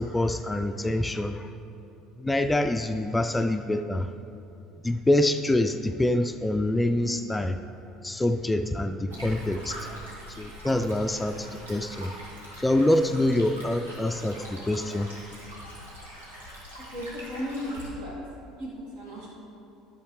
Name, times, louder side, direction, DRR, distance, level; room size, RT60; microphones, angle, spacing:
voice 1, 0.0-1.5 2.2-4.1 4.8-7.6 8.0-9.8 10.4-12.1 12.6-15.1, left 1 dB, 10° left, 7 dB, 0.4 m, -25 dB
Stream, 9.1-17.9, equal, 85° right, 1.9 m, -43 dB
voice 2, 16.9-18.1 18.6-19.4, equal, 65° right, -4 dB, 2.2 m, -35 dB
12.5 x 6.3 x 3.2 m, 2.7 s
figure-of-eight pair, 65°, 0 cm